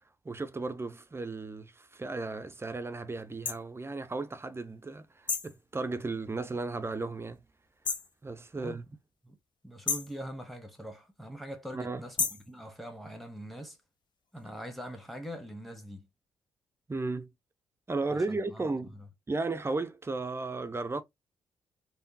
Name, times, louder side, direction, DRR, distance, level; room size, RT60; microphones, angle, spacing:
voice 1, 0.2-7.4 8.2-8.9 11.7-12.0 16.9-17.3 17.9-19.0 19.3-21.0, right 3 dB, 20° right, 0.6 m, -35 dB
sound 1, 3.4-3.6 5.3-5.6 7.8-8.1 9.9-10.2 12.2-12.5, left 5 dB, 40° left, 0.7 m, -31 dB
voice 2, 9.6-12.2 12.5-13.8 14.3-16.1 18.1-19.1, equal, ahead, 1.3 m, -43 dB
3.5 x 2.2 x 2.7 m
hypercardioid pair, 40°, 11 cm